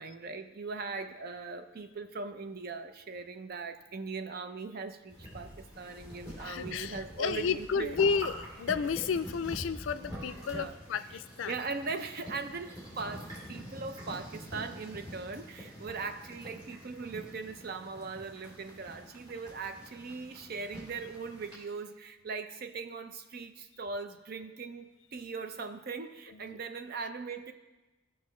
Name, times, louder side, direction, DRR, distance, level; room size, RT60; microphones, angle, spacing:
voice 1, 0.0-8.0 10.5-10.7 11.4-27.5, right 4 dB, 50° right, 8 dB, 0.6 m, -40 dB
sound 1, 5.1-21.6, equal, 20° right, 2.8 m, -46 dB
voice 2, 6.4-11.5 26.3-26.6, left 6 dB, 75° left, 14 dB, 0.4 m, -32 dB
15.5 x 5.7 x 3.1 m, 1.1 s
head